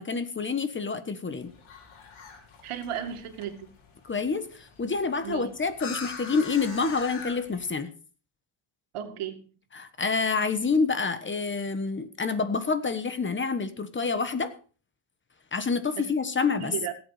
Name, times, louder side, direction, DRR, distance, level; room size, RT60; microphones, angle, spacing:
voice 1, 0.0-1.5 4.0-7.9 9.7-14.5 15.5-16.7, left 4 dB, 25° left, 11 dB, 1.3 m, -28 dB
sound 1, 1.3-7.7, left 5 dB, 75° left, 5.0 m, -44 dB
voice 2, 2.6-3.7 5.2-5.5 8.9-9.5 16.0-16.1 16.6-16.9, right 9 dB, 90° right, 7 dB, 2.3 m, -34 dB
17.0 x 8.3 x 4.9 m, 0.37 s
cardioid pair, 145°, 49 cm